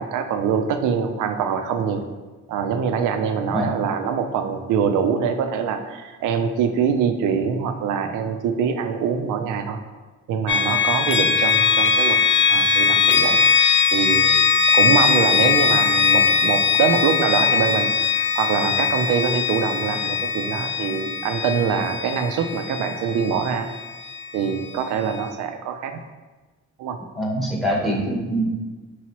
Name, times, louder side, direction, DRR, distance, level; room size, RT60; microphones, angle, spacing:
voice 1, 0.0-2.0 2.5-9.8 10.3-12.2 12.5-23.7 24.3-26.0 26.8-27.0, right 6 dB, 85° right, 7 dB, 0.5 m, -24 dB
sound 1, 10.5-24.3, left 5 dB, 40° left, 0.4 m, -20 dB
voice 2, 27.2-28.6, right 1 dB, ahead, -2 dB, 1.0 m, -24 dB
4.6 x 3.0 x 2.9 m, 1.3 s
cardioid pair, 90°, 30 cm